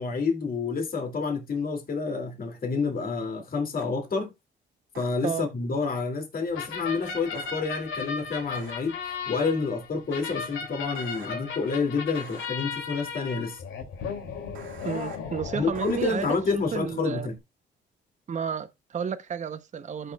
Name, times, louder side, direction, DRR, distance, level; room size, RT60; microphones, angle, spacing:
voice 1, 0.0-4.3 5.0-9.0 9.3-13.6 15.5-17.3, left 4 dB, 45° left, 2.4 m, -29 dB
sound 1, 3.8-3.9 4.9-5.0 7.3-7.5 8.5-8.7 10.9-11.3 12.1-12.5 14.5-15.2 15.7-16.4, right 7 dB, 80° right, 2.0 m, -46 dB
sound 2, 6.5-16.9, left 6 dB, 85° left, 2.5 m, -36 dB
voice 2, 14.8-16.4 16.7-17.3 18.3-20.1, right 7 dB, 40° right, 0.7 m, -32 dB
13.5 x 5.8 x 2.3 m
cardioid pair, 90°, 20 cm